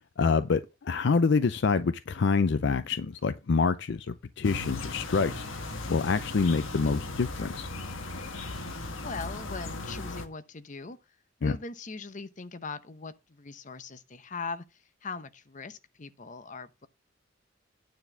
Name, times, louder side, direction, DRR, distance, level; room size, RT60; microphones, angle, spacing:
voice 1, 0.2-5.5 5.9-7.7 11.4-11.6, left 4 dB, 60° left, 0.5 m, -26 dB
sound 1, 4.4-10.3, left 2 dB, 85° left, 1.5 m, -37 dB
voice 2, 9.0-11.0 11.4-16.9, left 4 dB, 40° left, 0.8 m, -40 dB
9.5 x 4.1 x 7.1 m
head